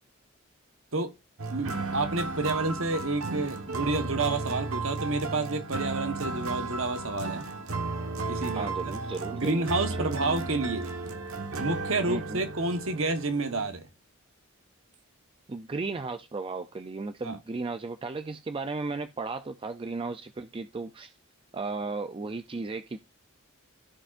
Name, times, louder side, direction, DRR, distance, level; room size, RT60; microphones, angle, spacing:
sound 1, 1.4-13.7, right 3 dB, 85° right, 1.3 m, -34 dB
voice 1, 1.5-7.5 8.3-8.9 9.3-10.9 11.6-13.9 17.2-17.4, right 3 dB, 70° right, 1.2 m, -29 dB
voice 2, 8.5-10.1 12.1-12.4 15.5-21.1 21.5-23.0, right 3 dB, 25° right, 0.4 m, -35 dB
14.5 x 5.0 x 2.5 m
head